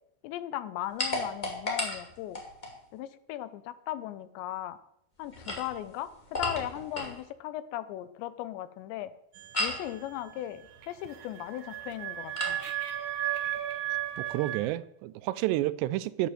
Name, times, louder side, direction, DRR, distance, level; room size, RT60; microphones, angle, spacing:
voice 1, 0.2-2.4 2.9-4.8 5.2-9.1 9.6-12.6, left 13 dB, 80° left, 2.8 m, -37 dB
sound 1, 1.0-2.8 5.2-7.2 9.5-9.9 12.4-12.6, left 1 dB, 15° left, 1.4 m, -34 dB
sound 2, 9.3-14.6, right 12 dB, 60° right, 2.2 m, -35 dB
voice 2, 14.2-16.3, right 15 dB, 80° right, 2.5 m, -30 dB
11.0 x 10.5 x 7.6 m
omnidirectional pair, 5.4 m